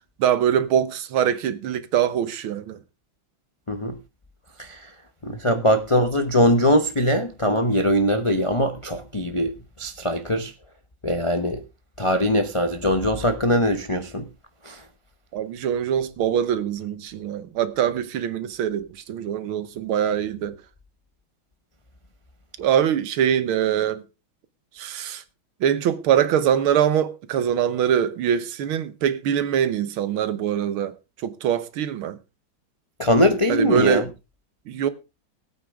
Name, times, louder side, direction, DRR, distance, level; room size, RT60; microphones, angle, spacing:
voice 1, 0.2-2.8 5.5-5.6 15.3-20.6 22.6-24.0 24.8-25.2 25.6-30.9 31.2-32.2 33.5-34.1 34.7-34.9, right 9 dB, 85° right, 1.9 m, -23 dB
voice 2, 3.7-4.0 4.6-4.9 5.2-9.5 9.8-10.5 11.0-11.6 12.0-14.3 14.6-14.8 33.0-34.1, equal, 45° left, 0.4 m, -21 dB
19.5 x 8.6 x 3.6 m
omnidirectional pair, 2.2 m